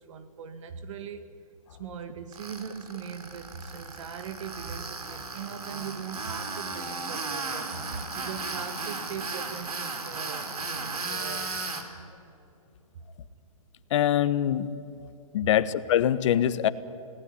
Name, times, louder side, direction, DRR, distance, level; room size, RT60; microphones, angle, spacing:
voice 1, 0.0-1.3 1.8-11.6 15.4-15.5, right 7 dB, 55° right, 9 dB, 1.7 m, -40 dB
Tools, 2.3-11.8, right 3 dB, 85° right, 4.1 m, -35 dB
voice 2, 13.9-14.7 15.3-16.7, left 11 dB, 55° left, 14 dB, 1.3 m, -23 dB
29.5 x 19.0 x 9.9 m, 2.7 s
hypercardioid pair, 140°, 19 cm